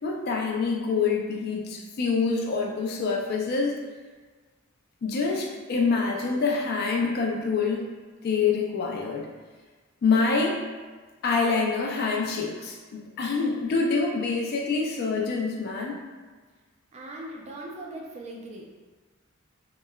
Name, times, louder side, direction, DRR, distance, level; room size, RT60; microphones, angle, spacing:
voice 1, 0.0-3.7 5.0-7.8 8.2-9.3 10.0-10.6 11.2-16.0, left 4 dB, 50° left, 0 dB, 0.3 m, -26 dB
voice 2, 16.9-18.7, right 1 dB, 30° right, -2 dB, 0.3 m, -39 dB
2.9 x 2.0 x 2.2 m, 1.4 s
head